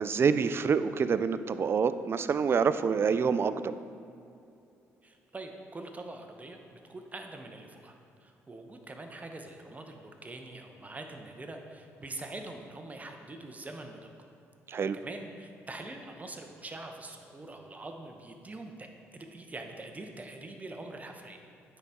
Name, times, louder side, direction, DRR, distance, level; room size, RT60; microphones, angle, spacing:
voice 1, 0.0-3.8 14.7-15.0, right 6 dB, 40° right, 13 dB, 0.3 m, -27 dB
voice 2, 5.0-14.1 14.9-21.4, right 2 dB, 25° right, 4 dB, 0.8 m, -44 dB
9.7 x 4.0 x 3.6 m, 2.6 s
supercardioid pair, 65°, 6 cm